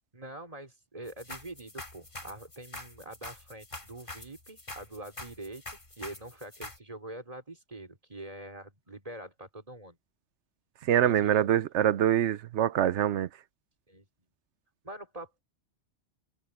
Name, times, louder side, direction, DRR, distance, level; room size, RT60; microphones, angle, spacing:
voice 1, 0.1-10.0 11.0-11.5 13.9-14.1 14.8-15.4, right 2 dB, 30° right, 3.6 m, -44 dB
sound 1, 1.1-6.8, left 2 dB, 45° left, 3.6 m, -45 dB
voice 2, 10.8-13.3, right 10 dB, 80° right, 1.0 m, -25 dB
omnidirectional pair, 1.2 m